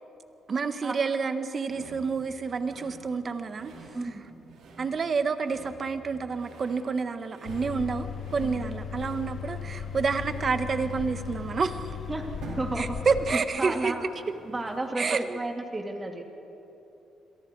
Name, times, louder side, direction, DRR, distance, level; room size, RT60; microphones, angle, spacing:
voice 1, 0.5-3.7 4.8-12.0 12.8-13.9 15.0-15.4, right 5 dB, 40° right, 10 dB, 1.4 m, -29 dB
sound 1, 1.6-15.1, right 3 dB, 80° right, 5.2 m, -49 dB
voice 2, 3.9-4.2 8.4-8.6 12.1-12.3 12.6-13.0 13.3-14.1 14.4-16.2, right 2 dB, 20° right, 3 dB, 3.1 m, -33 dB
sound 2, 7.5-13.4, left 7 dB, 55° left, 1.2 m, -37 dB
29.5 x 23.0 x 4.8 m, 2.9 s
cardioid pair, 90°, 0 cm